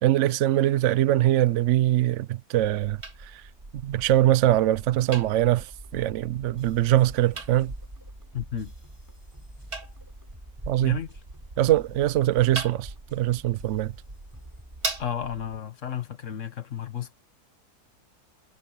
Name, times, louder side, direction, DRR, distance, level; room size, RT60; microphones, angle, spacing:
voice 1, 0.0-3.4 3.7-7.7 10.7-11.0 11.6-13.9, right 13 dB, 75° right, 0.6 m, -23 dB
sound 1, 2.6-15.6, right 2 dB, 30° right, 2.7 m, -41 dB
sound 2, 5.7-15.0, equal, 10° right, 6.8 m, -49 dB
voice 2, 8.3-8.7 10.8-11.1 15.0-17.3, left 9 dB, 45° left, 1.6 m, -33 dB
omnidirectional pair, 1.9 m